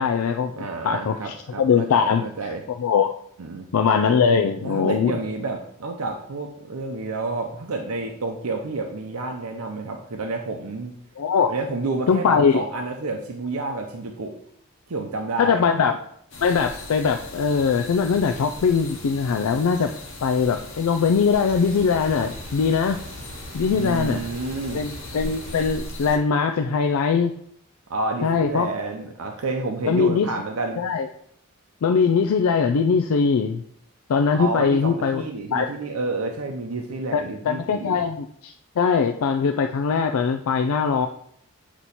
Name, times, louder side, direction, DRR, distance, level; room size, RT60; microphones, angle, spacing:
voice 1, 0.0-0.5 0.8-3.1 3.7-5.2 11.2-11.5 12.1-12.6 15.4-15.9 16.4-19.9 20.2-23.0 23.5-24.3 24.7-27.3 28.2-28.7 29.9-30.3 30.8-31.1 31.8-33.6 34.1-35.2 35.5-35.7 37.1-41.1, left 5 dB, 80° left, 5 dB, 0.4 m, -21 dB
voice 2, 0.6-2.6 3.4-3.7 4.6-10.9 11.5-14.4 14.9-15.6 23.7-24.8 27.9-30.8 34.3-38.0, right 3 dB, 80° right, 3 dB, 0.6 m, -29 dB
sound 1, 16.3-26.2, left 2 dB, 65° left, 1.2 m, -39 dB
sound 2, 21.3-25.7, equal, 30° right, 1.4 m, -42 dB
8.0 x 3.0 x 4.2 m, 0.69 s
head